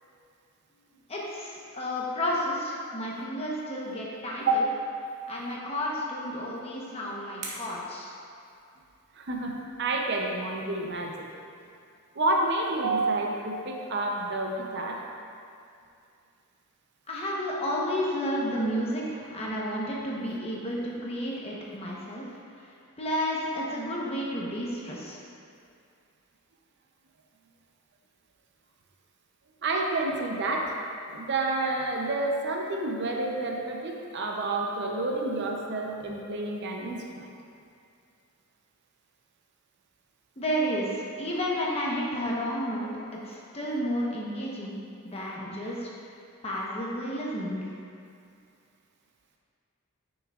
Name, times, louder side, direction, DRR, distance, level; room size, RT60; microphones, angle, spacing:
voice 1, 1.1-4.7 5.3-8.1 17.1-22.3 22.5-25.2 40.4-42.9 43.2-45.9 46.4-47.7, equal, 25° left, -4 dB, 1.0 m, -31 dB
sound 1, 6.3-9.0, right 3 dB, 85° right, 1.3 m, -46 dB
voice 2, 9.2-11.3 12.2-15.0 29.6-30.7 31.1-37.3, right 2 dB, 50° right, 0 dB, 0.6 m, -29 dB
9.7 x 6.2 x 2.4 m, 2.4 s
head